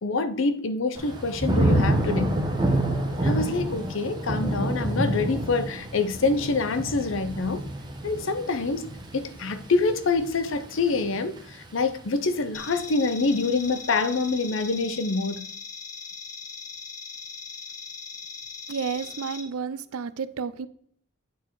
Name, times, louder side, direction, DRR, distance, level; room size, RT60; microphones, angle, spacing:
voice 1, 0.0-2.4 3.2-7.6 8.0-15.4, left 3 dB, 60° left, 0.6 m, -26 dB
Thunder / Rain, 0.9-11.9 12.3-12.8, right 1 dB, 20° right, 1.1 m, -28 dB
sound 1, 12.5-19.4, left 5 dB, 35° left, 1.2 m, -40 dB
voice 2, 18.7-20.7, right 6 dB, 85° right, 0.5 m, -31 dB
9.1 x 4.5 x 4.7 m
head